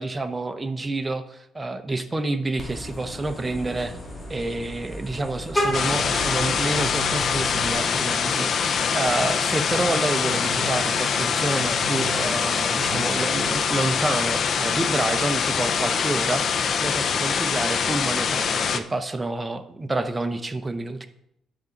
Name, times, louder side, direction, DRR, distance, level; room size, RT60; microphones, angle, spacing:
voice 1, 0.0-4.0 4.3-21.1, right 2 dB, 20° right, 8 dB, 0.9 m, -28 dB
Vehicle horn car horn honking, 2.6-7.7, equal, 20° left, 2.4 m, -32 dB
sound 1, 5.7-18.8, left 6 dB, 55° left, 0.6 m, -24 dB
sound 2, 5.7-9.1 9.9-14.7, right 7 dB, 75° right, 0.8 m, -40 dB
10.5 x 7.0 x 4.0 m, 0.78 s
cardioid pair, 90°, 0 cm